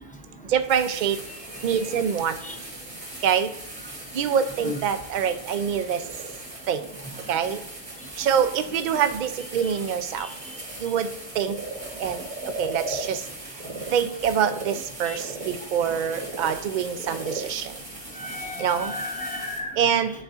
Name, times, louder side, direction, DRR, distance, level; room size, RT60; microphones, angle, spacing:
voice 1, 0.5-1.2 1.6-2.4 3.2-3.5 4.1-6.0 6.7-6.9 7.3-7.6 8.2-10.3 10.8-11.1 11.4-11.6 12.0-12.2 12.6-13.2 13.9-17.7 18.6-18.9 19.8-20.1, right 8 dB, 55° right, 11 dB, 0.5 m, -25 dB
sound 1, 0.7-19.6, right 1 dB, 80° right, 2.6 m, -41 dB
Frog, 1.2-13.9 14.3-18.9, right 2 dB, 40° right, 1.0 m, -40 dB
voice 2, 18.1-19.7, left 2 dB, 10° left, 1 dB, 0.5 m, -33 dB
11.0 x 3.8 x 2.4 m, 0.92 s
omnidirectional pair, 1.2 m